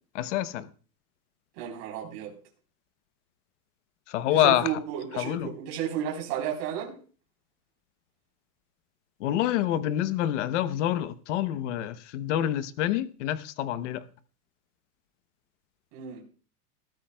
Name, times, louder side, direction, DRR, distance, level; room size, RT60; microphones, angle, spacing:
voice 1, 0.1-0.7 4.1-4.8 5.1-5.5 9.2-14.0, left 12 dB, 50° left, 0.9 m, -27 dB
voice 2, 1.6-2.3 4.3-7.0 15.9-16.2, right 9 dB, 40° right, 3.8 m, -33 dB
20.5 x 13.5 x 2.3 m
supercardioid pair, 170°, 46 cm